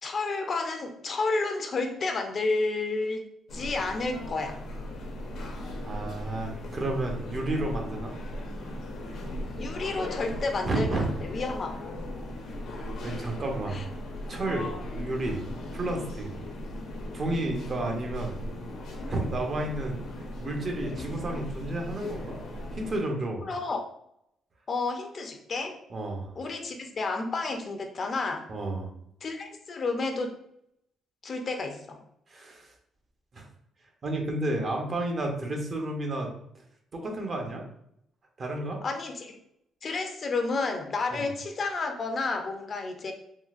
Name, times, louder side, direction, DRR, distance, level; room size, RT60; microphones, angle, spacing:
voice 1, 0.0-3.3 3.5-4.6 9.6-12.1 13.7-13.8 23.4-23.9 24.7-25.8 26.4-28.5 29.2-30.3 31.2-32.0 38.8-39.4 39.8-43.1, left 3 dB, 45° left, 4 dB, 0.5 m, -31 dB
sound 1, 3.5-23.0, left 1 dB, 80° left, 0.8 m, -37 dB
voice 2, 5.8-8.1 10.7-11.1 13.0-13.8 14.3-15.4 15.7-16.3 17.1-18.4 19.1-20.0 20.4-22.4 22.7-23.5 25.9-26.3 28.5-28.9 32.3-32.7 33.3-33.5 34.0-36.3 36.9-37.6 38.4-38.8 41.1-41.3, right 2 dB, 45° right, 2 dB, 0.7 m, -31 dB
3.7 x 2.4 x 2.4 m, 0.74 s
cardioid pair, 90°, 0 cm